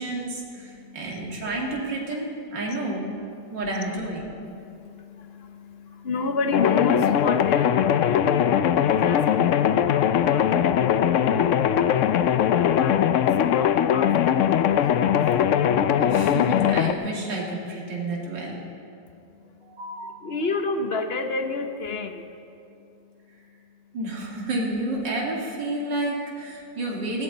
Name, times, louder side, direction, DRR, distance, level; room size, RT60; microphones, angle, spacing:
voice 1, 0.0-3.1 3.5-4.2 16.0-18.6 19.6-20.2 23.9-27.2, right 2 dB, 75° right, -3 dB, 3.1 m, -30 dB
voice 2, 0.6-1.1 3.3-3.6 4.4-8.4 8.8-11.6 12.2-15.5 19.1-22.3, left 3 dB, 40° left, 6 dB, 1.0 m, -32 dB
sound 1, 6.5-16.9, left 9 dB, 80° left, 0.6 m, -20 dB
19.0 x 16.0 x 4.0 m, 2.7 s
omnidirectional pair, 1.9 m